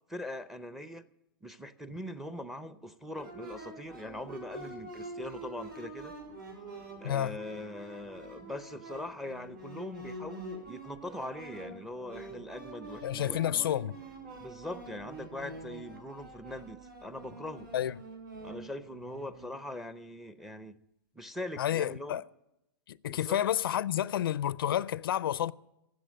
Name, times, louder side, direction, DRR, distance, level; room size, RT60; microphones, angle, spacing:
voice 1, 0.1-1.1 1.4-6.1 7.0-13.7 14.4-17.7 18.4-20.8 21.2-22.2 23.1-23.4, left 1 dB, ahead, 0.6 m, -42 dB
sound 1, 3.2-19.5, right 1 dB, 60° right, 7.1 m, -46 dB
voice 2, 7.0-7.4 13.0-14.0 17.7-18.0 21.6-22.2 22.9-25.5, left 11 dB, 75° left, 0.4 m, -30 dB
13.5 x 8.1 x 9.2 m
hypercardioid pair, 130°, 12 cm